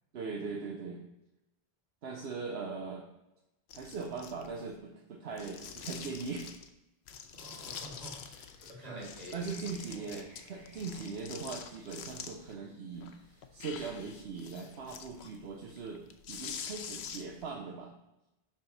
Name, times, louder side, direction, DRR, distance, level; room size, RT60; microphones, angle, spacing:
voice 1, 0.1-1.0 2.0-3.1 3.7-6.5 8.9-17.9, right 4 dB, 75° right, 1 dB, 1.0 m, -40 dB
sound 1, 3.7-4.7 5.3-6.7 7.1-8.7 9.0-12.5 12.9-17.5, left 7 dB, 85° left, 0.9 m, -46 dB
voice 2, 7.1-10.1, equal, 40° right, -2 dB, 2.0 m, -49 dB
sound 2, 7.5-13.7, equal, 55° left, 2.4 m, -61 dB
10.5 x 3.9 x 4.0 m, 0.95 s
omnidirectional pair, 1.1 m